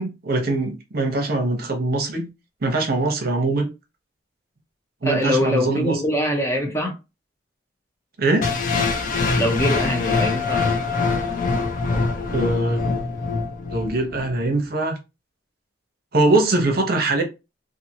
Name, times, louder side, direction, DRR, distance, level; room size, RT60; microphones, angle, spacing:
voice 1, 0.0-2.3 2.6-3.7 5.0-5.9 8.2-8.5 12.3-12.9 13.7-15.0 16.1-17.2, right 2 dB, 55° right, 0.8 m, -22 dB
voice 2, 5.0-6.9 9.3-10.7, equal, 15° left, 0.7 m, -23 dB
sound 1, 8.4-14.4, left 4 dB, 50° left, 0.5 m, -24 dB
2.7 x 2.5 x 2.7 m
head